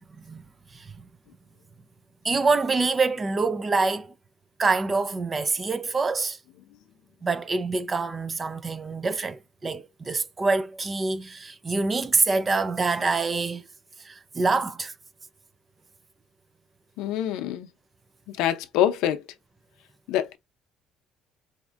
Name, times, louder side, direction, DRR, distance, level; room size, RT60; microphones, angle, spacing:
voice 1, 2.2-4.1 4.6-6.4 7.2-13.7 14.0-14.9, right 3 dB, 25° right, 0.4 m, -26 dB
voice 2, 17.0-17.7 18.3-19.3 20.1-20.4, left 11 dB, 85° left, 0.6 m, -25 dB
4.2 x 2.6 x 2.4 m
cardioid pair, 130°, 0 cm